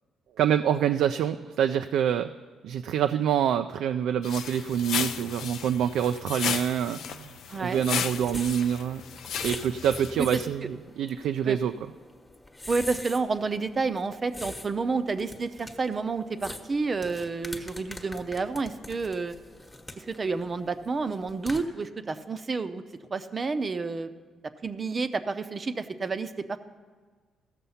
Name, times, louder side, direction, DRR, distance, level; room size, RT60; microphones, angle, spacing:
voice 1, 0.4-2.3 2.6-7.3 7.6-9.0 9.4-11.7, right 9 dB, 80° right, 8 dB, 0.3 m, -26 dB
sound 1, 4.2-10.4, left 8 dB, 75° left, 0.5 m, -34 dB
voice 2, 7.5-7.8 10.2-10.4 11.4-11.6 12.7-19.4 20.0-22.8 23.1-24.1 24.6-26.6, right 4 dB, 35° right, 10 dB, 0.6 m, -30 dB
sound 2, 7.6-21.6, left 1 dB, 15° left, 1.1 m, -44 dB
15.0 x 6.7 x 5.6 m, 1.4 s
cardioid pair, 90°, 0 cm